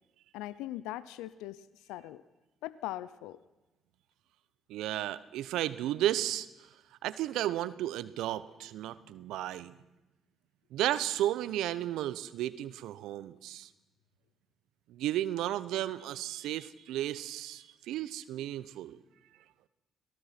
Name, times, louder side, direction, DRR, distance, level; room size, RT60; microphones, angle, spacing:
voice 1, 0.3-2.2 2.6-3.4, left 14 dB, 75° left, 17 dB, 0.7 m, -40 dB
voice 2, 4.7-6.5 7.0-9.7 10.7-13.7 14.9-19.0, right 13 dB, 75° right, 16 dB, 0.9 m, -33 dB
26.5 x 18.0 x 6.0 m, 1.0 s
hypercardioid pair, 45°, 0 cm